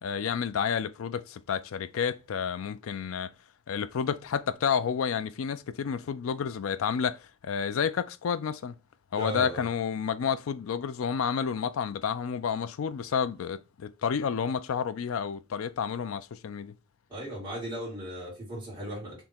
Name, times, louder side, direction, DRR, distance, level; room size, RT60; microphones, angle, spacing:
voice 1, 0.0-3.3 3.7-8.7 9.1-16.7, left 7 dB, 80° left, 0.4 m, -30 dB
voice 2, 9.2-9.7 17.1-19.2, right 1 dB, 20° right, 2.2 m, -37 dB
3.5 x 2.8 x 4.2 m
head